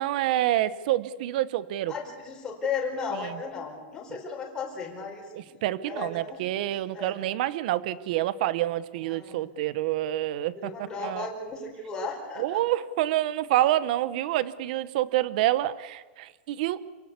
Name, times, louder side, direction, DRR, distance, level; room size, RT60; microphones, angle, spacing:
voice 1, 0.0-1.9 3.2-3.4 5.3-10.7 11.0-11.3 12.4-16.8, right 14 dB, 45° right, 17 dB, 1.0 m, -27 dB
voice 2, 1.9-5.3 5.8-6.6 6.9-7.2 9.0-9.5 10.5-12.6, left 5 dB, 10° left, -2 dB, 4.5 m, -35 dB
28.0 x 17.5 x 8.3 m, 1.4 s
supercardioid pair, 175°, 6 cm